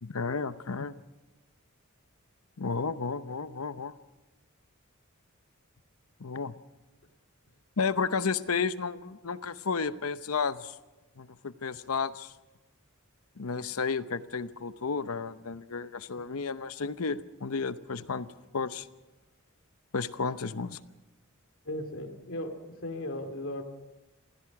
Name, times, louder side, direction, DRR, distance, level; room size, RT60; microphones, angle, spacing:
voice 1, 0.0-0.9 2.6-3.9 6.2-6.5 7.8-10.8 11.2-12.3 13.4-18.3 18.5-18.9 19.9-20.8, left 5 dB, 85° left, 13 dB, 0.8 m, -32 dB
voice 2, 21.6-23.6, left 1 dB, 65° left, 5 dB, 2.7 m, -36 dB
27.5 x 16.0 x 6.0 m, 1.1 s
head